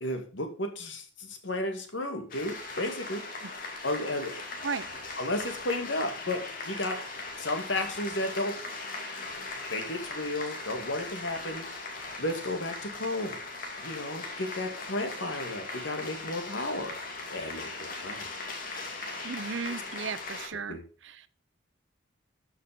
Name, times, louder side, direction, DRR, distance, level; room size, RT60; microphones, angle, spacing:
voice 1, 0.0-3.2 3.8-4.4 5.2-7.0 7.4-8.6 9.7-11.7 12.2-13.4 13.8-17.0 17.3-18.3 18.7-19.0 19.7-19.8 20.7-20.8, left 1 dB, 80° left, 6 dB, 2.2 m, -33 dB
sound 1, 2.3-20.5, left 3 dB, 45° left, 2.4 m, -39 dB
voice 2, 19.2-20.8 21.0-21.3, right 5 dB, 80° right, 14 dB, 0.8 m, -35 dB
13.0 x 6.3 x 5.3 m, 0.38 s
head